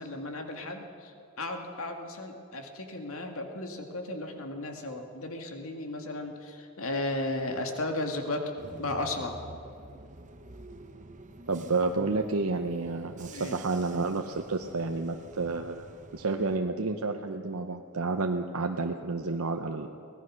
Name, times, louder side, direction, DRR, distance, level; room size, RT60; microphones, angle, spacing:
voice 1, 0.0-8.4 8.8-9.4 13.3-13.6, left 2 dB, 70° left, 4 dB, 2.2 m, -35 dB
Bus / Engine, 8.6-16.6, right 2 dB, 35° right, 0.9 m, -48 dB
voice 2, 11.5-15.9 16.1-19.9, right 3 dB, 75° right, 4 dB, 0.8 m, -30 dB
24.0 x 17.5 x 6.4 m, 2.6 s
head